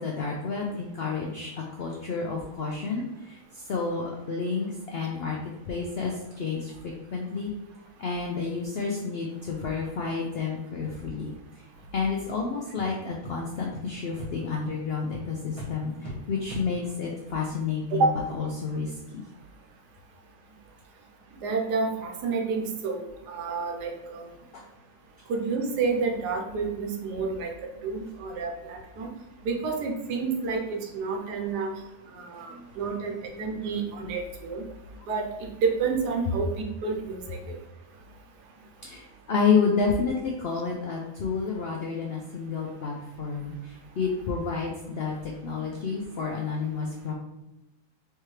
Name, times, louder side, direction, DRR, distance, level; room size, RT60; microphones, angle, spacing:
voice 1, 0.0-1.5 1.8-5.4 5.7-7.5 8.0-11.6 11.9-19.2 24.5-24.6 32.5-32.7 38.8-47.1, left 5 dB, 85° left, 0 dB, 0.5 m, -30 dB
sound 1, 6.3-6.4 6.8-6.9 7.3-7.5 7.8-7.9 8.3-8.4 8.8-9.0 9.3-9.4 9.8-9.9 10.3-10.4 10.8-11.1 11.7-11.8 12.2-12.4 12.7-12.8 13.2-13.3 13.7-13.8 14.2-14.3 14.6-14.8 15.1-15.2 15.5-15.7 16.0-16.1 16.5-16.6, equal, 25° left, 1.0 m, -42 dB
voice 2, 21.4-24.3 25.3-27.5 27.8-29.1 29.4-31.7 32.2-34.6 35.1-37.6, right 4 dB, 85° right, 2 dB, 1.3 m, -29 dB
4.3 x 3.5 x 3.1 m, 0.96 s
omnidirectional pair, 1.7 m